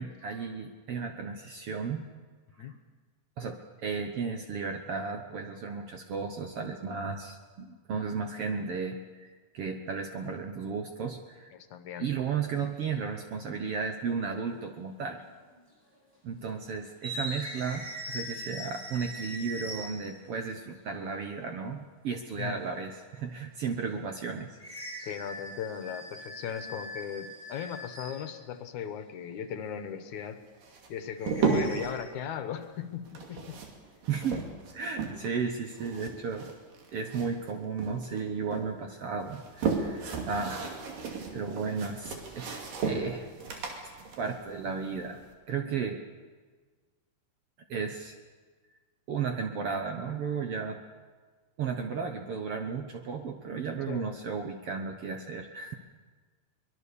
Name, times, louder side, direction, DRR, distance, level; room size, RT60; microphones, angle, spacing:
voice 1, 0.0-2.1 2.6-2.7 3.4-3.6 3.8-11.5 12.0-15.2 16.2-24.6 34.1-34.4 34.7-36.5 36.9-40.7 41.3-43.6 44.2-45.2 45.5-46.0 47.7-48.2 49.1-50.8 51.6-55.7, right 5 dB, 60° right, 5 dB, 1.6 m, -34 dB
voice 2, 11.5-12.1 22.4-22.6 25.0-30.4 30.9-33.6 53.9-54.2, left 8 dB, 70° left, 9 dB, 2.4 m, -38 dB
sound 1, 12.6-12.9 14.1-14.2 15.2-15.6 15.8-16.0 16.9-20.2 24.6-28.4 31.2-31.9, equal, 15° right, 8.2 m, -41 dB
sound 2, 30.6-31.9 33.1-35.4 35.7-37.5 37.8-38.7 39.2-45.3, right 5 dB, 85° right, 4.2 m, -34 dB
23.5 x 21.0 x 7.0 m, 1.4 s
omnidirectional pair, 3.8 m